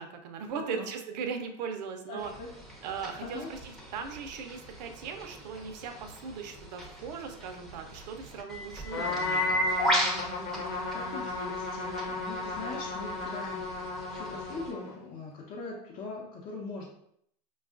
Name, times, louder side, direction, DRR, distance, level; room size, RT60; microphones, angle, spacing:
voice 1, 0.0-2.3 2.8-9.4, right 6 dB, 75° right, 5 dB, 0.6 m, -38 dB
voice 2, 0.5-0.9 2.1-2.5 3.2-3.5 9.0-9.6 10.6-16.9, left 3 dB, 40° left, -4 dB, 0.7 m, -41 dB
sound 1, 2.2-14.7, equal, ahead, 0.7 m, -36 dB
Trumpet, 8.9-15.1, left 2 dB, 60° left, 1.0 m, -35 dB
5.3 x 2.3 x 2.4 m, 0.70 s
supercardioid pair, 130°, 21 cm